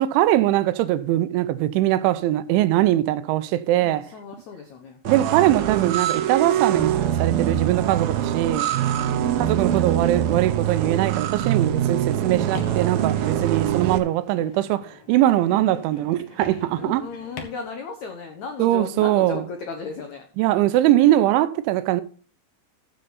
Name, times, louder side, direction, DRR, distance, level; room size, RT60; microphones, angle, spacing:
voice 1, 0.0-4.0 5.1-8.7 9.4-17.0 18.6-19.4 20.4-22.0, right 14 dB, 90° right, 3.2 m, -21 dB
voice 2, 3.8-5.3 9.0-10.1 11.9-12.2 16.8-20.3, left 5 dB, 85° left, 1.6 m, -36 dB
sound 1, 5.1-14.0, right 11 dB, 70° right, 2.3 m, -24 dB
sound 2, 12.1-17.4, left 5 dB, 65° left, 1.5 m, -42 dB
14.5 x 6.8 x 4.0 m
omnidirectional pair, 5.3 m